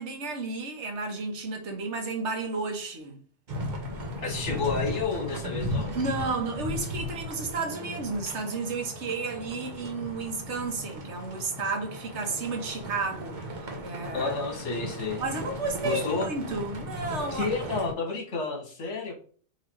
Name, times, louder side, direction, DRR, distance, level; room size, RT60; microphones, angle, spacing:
voice 1, 0.0-3.2 5.9-13.4 13.8-14.3 15.2-17.5, right 3 dB, 70° right, 1.3 m, -32 dB
sound 1, 3.5-17.9, equal, 40° right, 1.0 m, -36 dB
voice 2, 4.2-5.9 14.1-15.2 15.8-16.3 17.3-19.2, left 4 dB, 70° left, 1.5 m, -30 dB
3.9 x 2.9 x 4.5 m
omnidirectional pair, 1.2 m